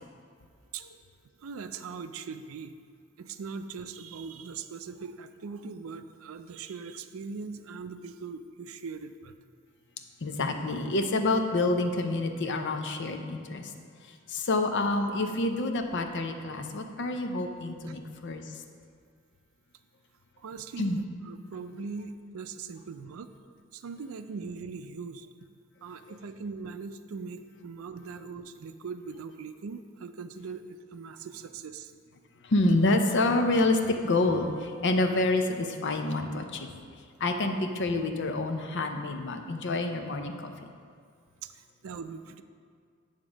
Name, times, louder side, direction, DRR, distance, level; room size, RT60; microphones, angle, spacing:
voice 1, 1.4-2.8 3.2-9.4 17.9-18.0 20.4-23.3 23.7-25.3 25.8-31.9 41.4-42.4, right 5 dB, 70° right, 10 dB, 0.4 m, -40 dB
voice 2, 10.2-13.7 14.3-18.4 20.8-21.0 32.4-36.7 37.2-40.7, left 2 dB, 55° left, 5 dB, 0.6 m, -27 dB
8.8 x 3.7 x 6.2 m, 2.1 s
head